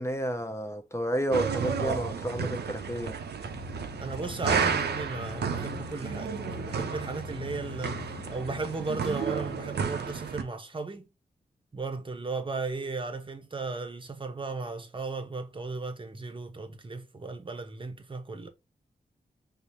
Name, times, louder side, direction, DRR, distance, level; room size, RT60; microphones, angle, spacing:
voice 1, 0.0-3.2 10.1-10.2, equal, 15° left, 0.7 m, -31 dB
sound 1, 1.3-10.4, right 6 dB, 80° right, 0.5 m, -32 dB
sound 2, 3.4-9.8, left 6 dB, 70° left, 0.6 m, -43 dB
voice 2, 4.0-11.1 11.7-18.5, right 3 dB, 30° right, 0.8 m, -35 dB
5.2 x 2.0 x 3.0 m
wide cardioid pair, 90°, 17 cm